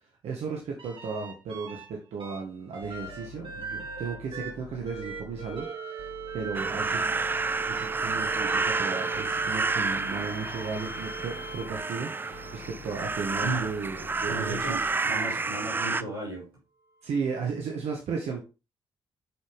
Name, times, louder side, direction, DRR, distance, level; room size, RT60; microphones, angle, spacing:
voice 1, 0.2-6.1 6.3-7.0 7.6-14.9 17.0-18.4, right 5 dB, 60° right, 0 dB, 1.6 m, -35 dB
sound 1, 0.8-1.9 2.2-13.0 13.8-15.4 17.1-17.2, right 5 dB, 45° right, 2.7 m, -40 dB
sound 2, 2.8-5.7 6.0-8.8 9.1-11.8 12.3-14.9, left 12 dB, 80° left, 0.7 m, -49 dB
sound 3, 6.5-16.0, right 3 dB, 15° right, 0.3 m, -30 dB
voice 2, 14.2-16.5, right 2 dB, 90° right, -5 dB, 3.7 m, -34 dB
7.9 x 5.5 x 3.5 m, 0.30 s
hypercardioid pair, 40°, 12 cm